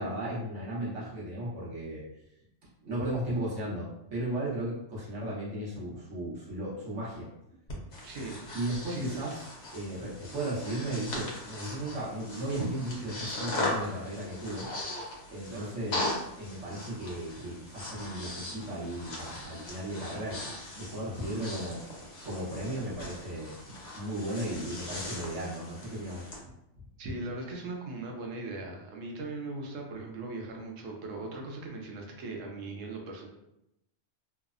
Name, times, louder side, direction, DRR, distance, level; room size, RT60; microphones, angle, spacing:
voice 1, 0.0-2.0 2.8-7.3 8.5-9.4 9.7-14.7 15.3-16.1 16.4-20.4 20.7-23.5 23.9-26.3, right 1 dB, 75° right, -7 dB, 1.2 m, -35 dB
Breathing, 7.7-26.4, left 1 dB, 70° left, 1.0 m, -39 dB
voice 2, 8.0-8.4 8.8-9.2 15.5-15.7 27.0-33.3, right 2 dB, 90° right, 1 dB, 1.0 m, -39 dB
3.1 x 2.0 x 2.4 m, 0.85 s
omnidirectional pair, 1.3 m